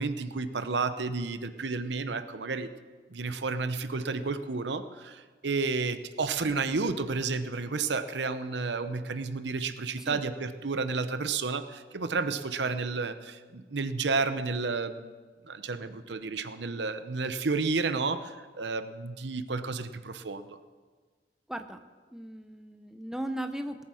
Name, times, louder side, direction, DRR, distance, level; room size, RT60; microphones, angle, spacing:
voice 1, 0.0-2.7 3.1-15.1 15.4-20.6, right 4 dB, 80° right, 11 dB, 0.8 m, -31 dB
voice 2, 21.5-21.8 22.1-23.8, right 1 dB, 5° right, 7 dB, 0.6 m, -37 dB
18.0 x 8.8 x 6.3 m, 1.4 s
head